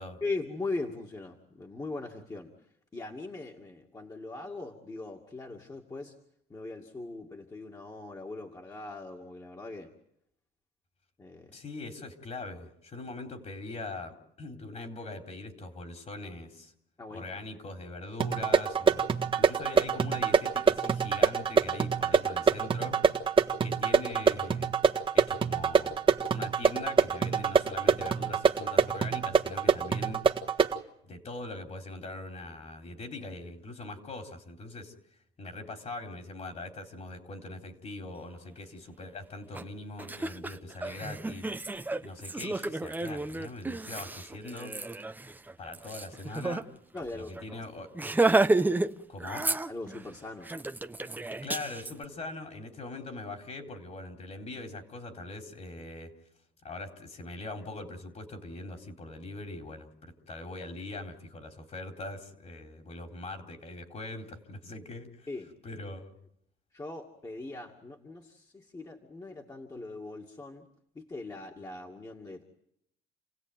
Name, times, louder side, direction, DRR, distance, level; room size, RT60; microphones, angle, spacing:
voice 1, 0.2-2.5 2.9-6.2 6.5-9.9 11.2-11.5 17.0-17.2 46.9-47.3 49.7-50.5 65.3-65.5 66.7-70.7 70.9-72.4, left 3 dB, 20° left, 0 dB, 2.4 m, -40 dB
voice 2, 11.5-16.7 17.1-19.0 19.3-23.0 23.6-24.7 25.1-26.0 26.3-30.2 31.0-34.9 35.4-41.5 42.0-44.7 45.6-46.7 47.1-47.9 49.1-49.5 51.4-56.1 56.6-65.3 65.6-66.1, left 2 dB, 40° left, 5 dB, 4.0 m, -42 dB
sound 1, 18.2-30.8, right 5 dB, 30° right, 1.6 m, -26 dB
Laughter, 39.5-39.6 40.0-46.6 47.0-47.1 47.4-47.5 47.9-48.9 49.2-50.0 50.4-51.9, right 2 dB, 10° right, 0.9 m, -30 dB
30.0 x 16.5 x 9.3 m, 0.78 s
cardioid pair, 110°, 17 cm